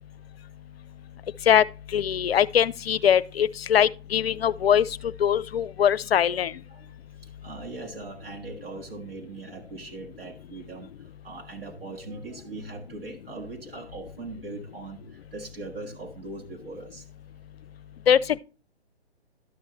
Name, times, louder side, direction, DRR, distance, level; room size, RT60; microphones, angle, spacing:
voice 1, 1.9-4.8 5.2-6.5 18.1-18.2, left 9 dB, 65° left, 0.5 m, -21 dB
voice 2, 7.4-10.9 11.2-15.0 15.3-17.0, right 3 dB, 55° right, 1.4 m, -40 dB
11.5 x 6.5 x 3.0 m
figure-of-eight pair, 130°, 33 cm